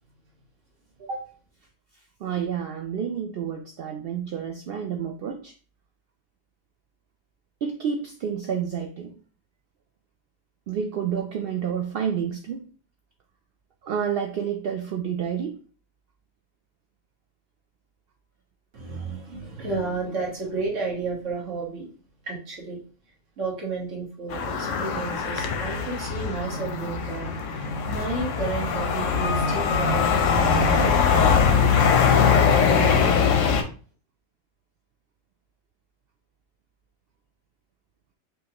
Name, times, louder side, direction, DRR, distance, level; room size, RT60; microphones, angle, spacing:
voice 1, 1.0-1.3 2.2-5.5 7.6-9.1 10.7-12.6 13.8-15.6, right 7 dB, 60° right, 0.7 m, -29 dB
voice 2, 18.7-21.9 22.2-22.8 23.4-33.3, right 4 dB, 80° right, 1.7 m, -33 dB
sound 1, 24.3-33.6, left 6 dB, 90° left, 1.1 m, -22 dB
5.5 x 2.6 x 2.9 m
omnidirectional pair, 1.3 m